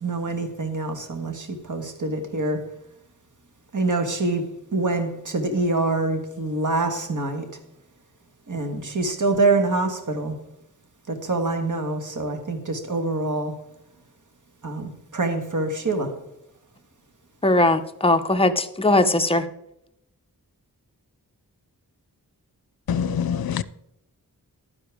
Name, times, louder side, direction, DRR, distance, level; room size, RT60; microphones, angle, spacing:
voice 1, 0.0-1.3 1.7-2.6 3.7-4.4 4.7-7.4 8.5-10.3 11.1-13.5 14.6-16.1, right 2 dB, 55° right, 5 dB, 1.7 m, -25 dB
voice 2, 17.4-19.4, left 2 dB, 15° left, 7 dB, 0.8 m, -19 dB
voice 3, 22.9-23.6, left 8 dB, 75° left, 17 dB, 0.6 m, -24 dB
12.0 x 10.0 x 3.6 m, 0.82 s
wide cardioid pair, 90°, 36 cm